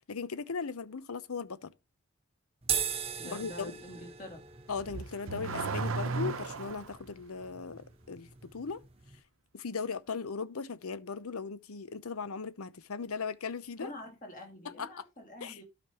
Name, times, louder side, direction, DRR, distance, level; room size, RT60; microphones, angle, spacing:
voice 1, 0.1-1.7 3.2-3.7 4.7-8.8 9.5-13.9 14.8-14.9 15.4-15.6, left 5 dB, 80° left, 0.8 m, -38 dB
sound 1, 2.6-9.2, right 8 dB, 25° right, 0.9 m, -39 dB
voice 2, 3.2-4.4 13.8-15.6, left 1 dB, 35° left, 2.5 m, -46 dB
Car / Accelerating revving vroom, 4.7-7.0, right 3 dB, 65° right, 0.8 m, -35 dB
12.5 x 5.2 x 3.0 m
head